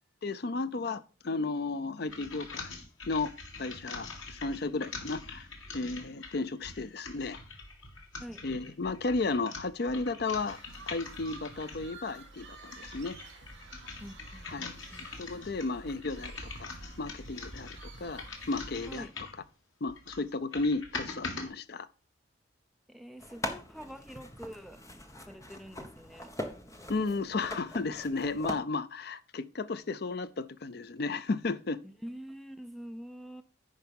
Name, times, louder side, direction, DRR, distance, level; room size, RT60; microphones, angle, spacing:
voice 1, 0.2-2.7 3.1-3.3 3.6-5.5 5.7-7.4 8.4-10.6 10.9-13.2 14.5-14.8 15.2-16.7 17.0-19.1 19.8-21.9 26.9-31.8, left 3 dB, 50° left, 0.5 m, -34 dB
sound 1, 2.1-11.9 12.5-19.4 19.9-21.5, left 3 dB, 85° left, 2.2 m, -44 dB
sound 2, 10.2-18.9, right 2 dB, 60° right, 3.8 m, -50 dB
voice 2, 14.0-15.1 18.9-19.1 22.9-24.8 25.2-26.3 31.8-33.4, equal, ahead, 0.5 m, -46 dB
sound 3, 23.2-28.5, left 1 dB, 15° left, 1.0 m, -42 dB
10.5 x 4.7 x 5.3 m
head